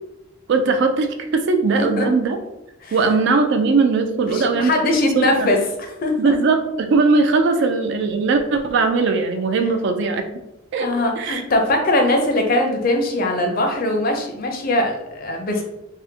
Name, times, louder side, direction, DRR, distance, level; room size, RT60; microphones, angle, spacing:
voice 1, 0.5-2.4 2.9-4.7 5.2-5.5 6.2-10.3 10.7-10.9 11.2-11.4, right 4 dB, 55° right, 7 dB, 0.3 m, -19 dB
voice 2, 1.7-2.1 2.8-3.0 4.3-5.6 6.0-6.3 7.5-7.6 10.8-15.6, left 1 dB, 45° left, 3 dB, 0.5 m, -21 dB
3.6 x 2.1 x 2.7 m, 0.93 s
head